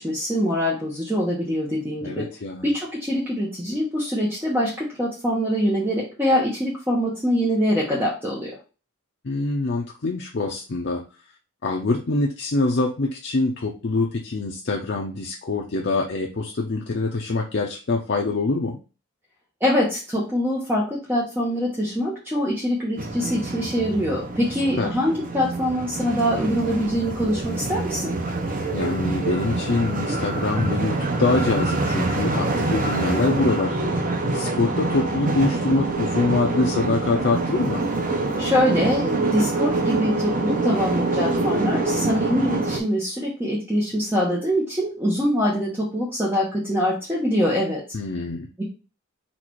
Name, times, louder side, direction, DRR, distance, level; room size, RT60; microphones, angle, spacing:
voice 1, 0.0-2.3 2.6-8.5 19.6-28.1 38.4-47.8 48.6-48.7, equal, 10° right, -4 dB, 0.8 m, -24 dB
voice 2, 2.0-2.7 9.2-11.0 11.6-18.8 24.8-24.9 28.7-33.8 34.3-37.8 47.9-48.5, left 3 dB, 55° left, 0 dB, 0.5 m, -24 dB
sound 1, 23.0-42.8, right 2 dB, 40° right, 0.6 m, -25 dB
4.2 x 2.5 x 4.5 m, 0.33 s
head